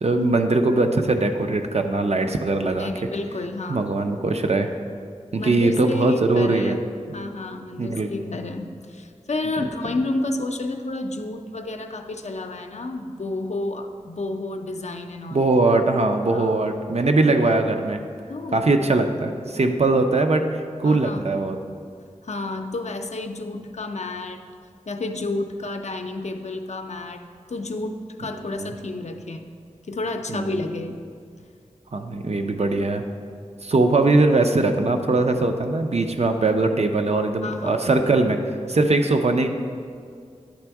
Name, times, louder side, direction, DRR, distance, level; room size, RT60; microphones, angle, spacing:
voice 1, 0.0-2.9 3.7-4.7 5.3-6.8 7.8-8.3 15.3-18.0 18.5-20.5 20.8-21.6 28.5-28.7 30.3-30.6 31.9-33.0 33.6-38.4 38.7-39.5, right 2 dB, 60° right, 5 dB, 0.5 m, -21 dB
voice 2, 2.8-3.9 5.4-6.8 7.1-15.5 16.2-16.5 18.3-18.7 20.8-21.3 22.2-24.4 24.9-27.2 27.5-29.5 29.9-31.0 37.4-37.8, left 2 dB, 65° left, 6 dB, 0.5 m, -30 dB
9.9 x 3.4 x 4.6 m, 2.2 s
wide cardioid pair, 55°, 12 cm